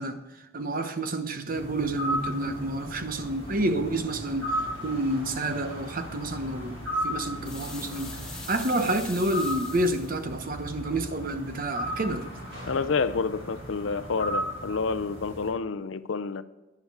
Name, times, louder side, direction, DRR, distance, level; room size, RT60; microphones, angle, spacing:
voice 1, 0.0-12.3, right 1 dB, 45° right, 1.0 m, -29 dB
sound 1, 1.5-15.5, equal, 60° right, 4.5 m, -36 dB
sound 2, 7.4-10.2, left 3 dB, 5° left, 2.7 m, -42 dB
voice 2, 12.7-16.4, left 4 dB, 70° left, 0.5 m, -29 dB
11.0 x 11.0 x 4.8 m
head